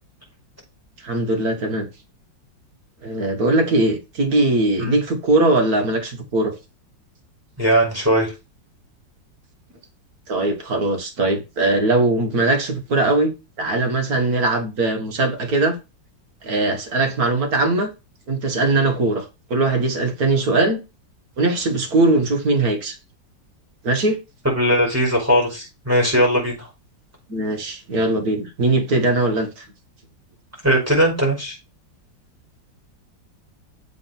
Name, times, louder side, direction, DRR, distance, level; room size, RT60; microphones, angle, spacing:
voice 1, 1.0-1.9 3.0-6.5 10.3-15.8 16.4-17.9 18.3-19.3 19.5-20.8 21.4-23.0 23.8-24.2 27.3-29.6, right 2 dB, 55° right, 2.0 m, -20 dB
voice 2, 7.6-8.3 24.4-26.7 30.6-31.6, equal, 5° right, 5.7 m, -19 dB
7.5 x 4.2 x 5.9 m
omnidirectional pair, 2.0 m